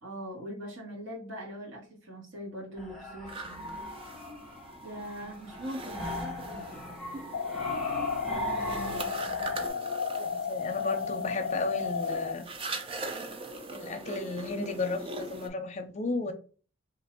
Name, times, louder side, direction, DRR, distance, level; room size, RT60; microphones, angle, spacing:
voice 1, 0.0-3.8 4.4-4.5 4.8-6.8 7.1-7.4, equal, 65° right, -4 dB, 1.5 m, -41 dB
sound 1, 2.8-9.7, equal, ahead, 0.8 m, -39 dB
sound 2, 3.3-15.5, right 2 dB, 25° right, 0.4 m, -42 dB
sound 3, 7.3-12.3, left 6 dB, 80° left, 0.4 m, -33 dB
voice 2, 10.2-12.5 13.7-16.3, left 3 dB, 35° left, 5 dB, 0.6 m, -34 dB
2.7 x 2.6 x 4.3 m, 0.39 s
head